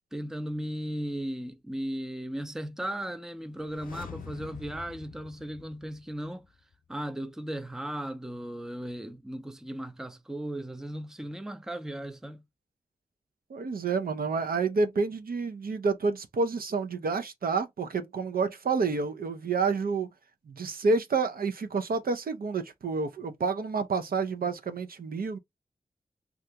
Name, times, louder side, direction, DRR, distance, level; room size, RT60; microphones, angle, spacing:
voice 1, 0.1-6.5 6.9-12.4, right 1 dB, 5° right, 0.4 m, -36 dB
sound 1, 3.5-6.5 6.7-6.8, left 6 dB, 70° left, 0.4 m, -46 dB
voice 2, 13.5-20.1 20.5-25.4, right 4 dB, 85° right, 0.6 m, -29 dB
2.8 x 2.5 x 3.3 m
wide cardioid pair, 80°, 15 cm